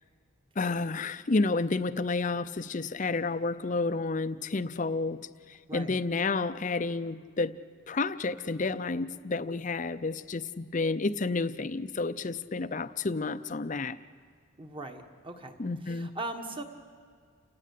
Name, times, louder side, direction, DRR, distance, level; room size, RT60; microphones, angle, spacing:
voice 1, 0.6-5.2 5.5-7.5 7.9-14.0 15.6-16.1, left 3 dB, 35° left, 13 dB, 0.6 m, -30 dB
voice 2, 5.7-6.0 14.6-16.6, right 2 dB, 25° right, 5 dB, 1.5 m, -40 dB
29.0 x 17.5 x 8.4 m, 2.1 s
head